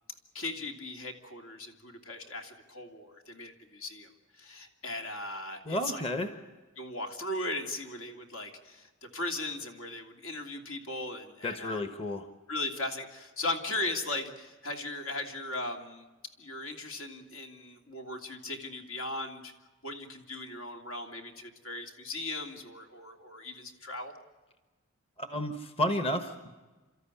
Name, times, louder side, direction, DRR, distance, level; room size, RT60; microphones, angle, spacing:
voice 1, 0.3-4.1 4.4-6.0 6.8-11.8 12.5-16.0 16.4-19.5 19.8-24.1, left 2 dB, 70° left, 4 dB, 3.0 m, -38 dB
voice 2, 5.6-6.3 11.4-12.3 25.2-26.6, left 1 dB, 25° left, 8 dB, 1.2 m, -32 dB
30.0 x 13.5 x 9.9 m, 1.2 s
head